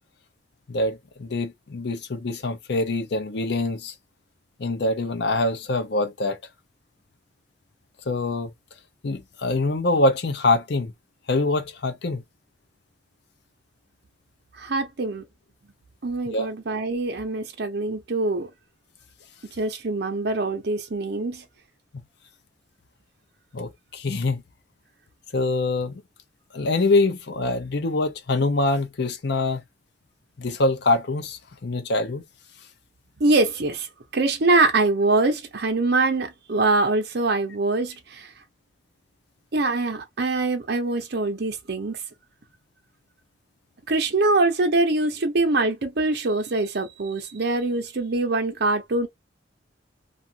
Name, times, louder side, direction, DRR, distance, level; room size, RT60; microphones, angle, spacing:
voice 1, 0.7-3.9 4.6-6.4 8.1-8.5 9.0-10.9 11.3-12.2 16.3-16.5 23.5-24.4 25.3-26.0 26.5-29.6 30.4-32.2, left 2 dB, 60° left, 0.6 m, -24 dB
voice 2, 14.6-15.2 16.0-18.5 19.6-21.4 33.2-33.9 34.1-38.3 39.5-42.0 43.9-49.1, right 2 dB, 60° right, 0.6 m, -23 dB
2.6 x 2.4 x 2.7 m
head